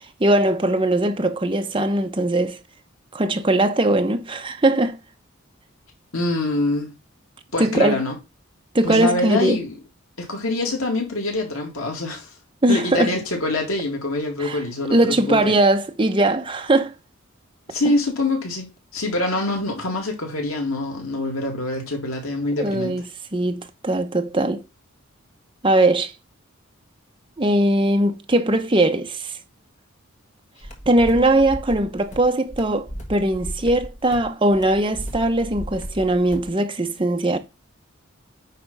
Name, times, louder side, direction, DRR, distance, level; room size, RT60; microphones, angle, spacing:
voice 1, 0.0-2.6 3.1-5.0 7.6-8.0 8.7-9.6 12.6-13.1 14.4-14.6 14.9-16.9 22.6-23.0 23.3-24.6 25.6-26.1 27.4-29.4 30.9-37.4, right 1 dB, 25° right, 0.8 m, -20 dB
voice 2, 6.1-6.9 7.5-8.2 8.8-9.7 10.2-12.3 12.7-15.4 17.7-22.9, left 2 dB, 90° left, 2.2 m, -25 dB
sound 1, 30.6-36.5, equal, 35° left, 1.7 m, -35 dB
9.4 x 3.3 x 5.4 m
head